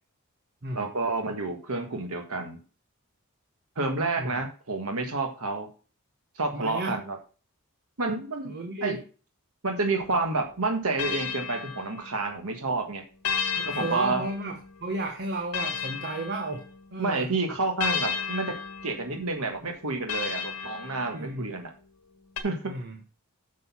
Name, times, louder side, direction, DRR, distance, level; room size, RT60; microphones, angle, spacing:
voice 1, 0.7-2.6 3.7-5.7 6.4-7.2 8.0-8.5 8.8-9.0 9.6-13.0 13.6-14.2 17.0-18.5 18.8-21.7 22.4-22.7, right 3 dB, 70° right, 4 dB, 1.6 m, -29 dB
voice 2, 6.5-7.0 8.5-9.0 13.5-17.3 21.1-21.5 22.7-23.0, right 2 dB, 50° right, 4 dB, 1.2 m, -33 dB
sound 1, 10.0-12.5 13.2-17.0 17.8-21.6 22.4-22.5, left 7 dB, 85° left, 1.5 m, -34 dB
6.6 x 6.4 x 5.6 m, 0.36 s
head